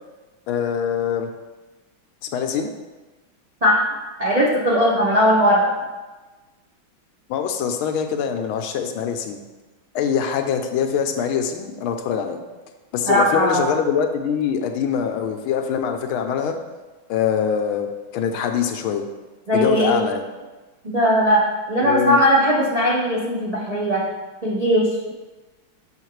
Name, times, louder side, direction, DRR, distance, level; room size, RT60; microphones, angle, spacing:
voice 1, 0.5-1.3 2.2-2.7 7.3-9.4 9.9-12.4 12.9-16.6 17.1-19.1 19.5-20.2 21.8-22.2, left 7 dB, 90° left, 6 dB, 1.5 m, -23 dB
voice 2, 4.2-5.7 13.0-13.7 19.5-20.0 20.8-21.4 21.7-24.0 24.4-25.1, equal, 65° right, -6 dB, 0.3 m, -18 dB
6.5 x 5.7 x 3.1 m, 1.2 s
omnidirectional pair, 2.3 m